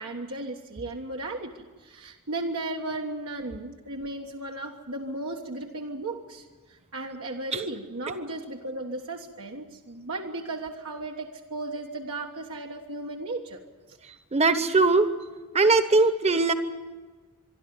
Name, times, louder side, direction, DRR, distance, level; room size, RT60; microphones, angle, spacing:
voice 1, 0.0-6.5 6.9-13.6, right 2 dB, 70° right, 0 dB, 1.4 m, -35 dB
voice 2, 14.3-15.1 15.5-16.5, right 3 dB, 30° right, 10 dB, 1.2 m, -20 dB
25.5 x 11.5 x 9.4 m, 1.3 s
head